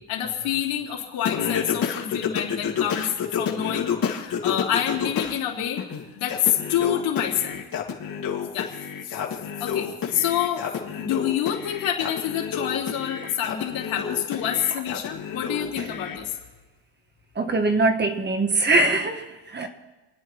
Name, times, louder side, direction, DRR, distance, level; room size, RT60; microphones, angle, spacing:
voice 1, 0.0-3.1 3.3-5.8 6.2-7.7 8.5-8.8 9.0-10.7 11.0-16.3, left 10 dB, 80° left, -1 dB, 3.5 m, -27 dB
Singing, 1.2-5.4 5.8-16.2, left 7 dB, 45° left, 2.5 m, -30 dB
voice 2, 17.3-19.7, right 2 dB, 20° right, 6 dB, 1.6 m, -22 dB
29.0 x 10.0 x 4.6 m, 1.1 s
cardioid pair, 130°, 47 cm